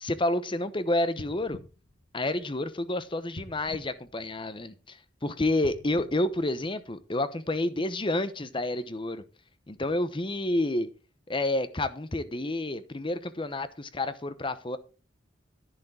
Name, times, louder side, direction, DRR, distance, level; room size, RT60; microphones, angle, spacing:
voice 1, 0.0-1.6 2.1-9.2 9.7-10.9 11.3-14.8, left 1 dB, 25° left, 0.9 m, -29 dB
sound 1, 1.1-2.8 3.3-4.9 5.5-7.2 7.8-7.9, left 1 dB, 60° left, 1.3 m, -47 dB
11.0 x 10.5 x 3.7 m
head